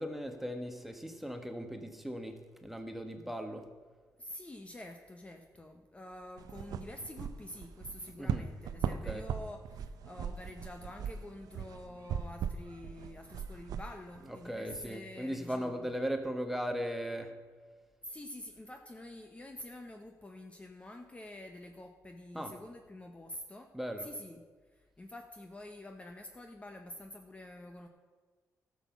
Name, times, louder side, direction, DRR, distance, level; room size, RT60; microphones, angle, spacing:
voice 1, 0.0-3.7 8.2-8.5 8.9-9.2 14.4-17.3 22.3-22.5 23.7-24.1, equal, 5° right, 6 dB, 1.2 m, -38 dB
voice 2, 4.2-15.9 18.0-23.7 24.0-24.4 24.7-27.9, left 1 dB, 20° left, 4 dB, 0.8 m, -47 dB
sound 1, 6.4-14.9, right 8 dB, 85° right, 0.5 m, -39 dB
12.5 x 6.3 x 7.1 m, 1.4 s
cardioid pair, 95°, 6 cm